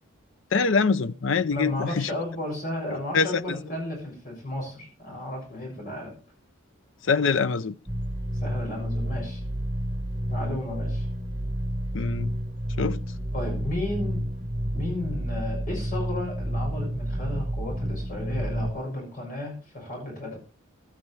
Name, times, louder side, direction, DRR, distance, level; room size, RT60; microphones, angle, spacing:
voice 1, 0.5-2.2 3.1-3.6 7.0-7.7 11.9-12.3 12.8-13.0, left 5 dB, 65° left, 0.5 m, -24 dB
voice 2, 1.5-6.1 8.4-9.4 10.3-11.0 13.3-14.3 14.7-20.4, left 1 dB, 40° left, 6.7 m, -33 dB
sound 1, 7.9-18.7, equal, 20° right, 1.6 m, -30 dB
15.0 x 12.5 x 3.2 m
head